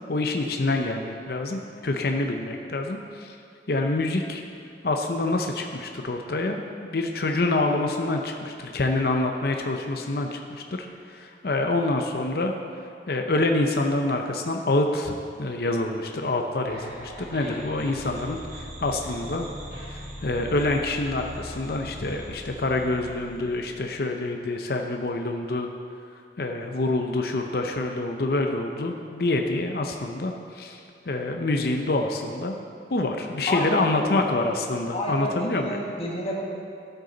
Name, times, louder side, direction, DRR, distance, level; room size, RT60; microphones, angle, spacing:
voice 1, 0.1-3.3 3.7-4.4 4.8-12.5 13.1-19.5 19.8-25.7 26.4-30.8 31.1-32.5 32.9-35.8, left 2 dB, 55° left, 3 dB, 0.6 m, -26 dB
sound 1, 16.6-23.8, equal, 55° right, 2.9 m, -40 dB
voice 2, 33.5-34.3 34.9-36.4, equal, 35° left, -2 dB, 1.5 m, -30 dB
13.5 x 8.1 x 3.9 m, 2.4 s
head